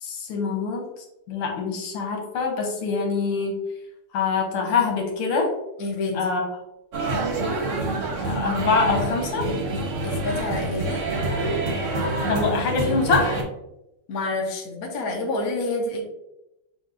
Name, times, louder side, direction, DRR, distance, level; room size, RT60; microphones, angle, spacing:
voice 1, 0.0-0.8 1.3-3.6 4.1-5.5 6.1-6.5 8.2-9.6 12.3-13.4, left 4 dB, 85° left, 1 dB, 1.9 m, -24 dB
voice 2, 5.8-6.2 10.0-11.0 14.1-16.0, left 2 dB, 55° left, 0 dB, 1.2 m, -28 dB
sound 1, 6.9-13.4, right 2 dB, 55° right, 0.9 m, -26 dB
7.1 x 2.6 x 2.5 m, 0.91 s
omnidirectional pair, 2.4 m